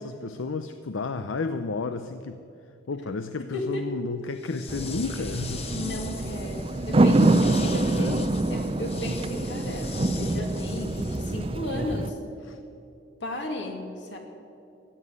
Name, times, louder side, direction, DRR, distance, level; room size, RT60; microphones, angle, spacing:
voice 1, 0.0-2.4 2.9-5.8 7.9-8.3 12.4-12.6, left 4 dB, 85° left, 10 dB, 0.6 m, -32 dB
voice 2, 3.4-3.8 5.7-12.2 13.2-14.2, left 1 dB, 65° left, 3 dB, 2.4 m, -34 dB
sound 1, 4.3-11.6, left 7 dB, 30° left, 0.9 m, -42 dB
sound 2, 4.7-12.1, right 2 dB, 30° right, 0.5 m, -25 dB
14.5 x 9.8 x 9.7 m, 2.6 s
head